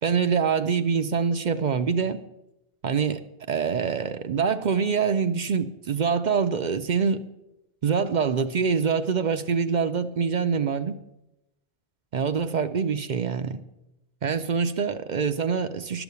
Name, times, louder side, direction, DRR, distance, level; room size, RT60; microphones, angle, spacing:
voice 1, 0.0-2.2 2.8-3.2 3.5-7.2 7.8-11.0 12.1-13.6 14.2-16.0, right 6 dB, 55° right, 11 dB, 0.6 m, -25 dB
11.5 x 7.0 x 8.1 m, 0.92 s
omnidirectional pair, 1.0 m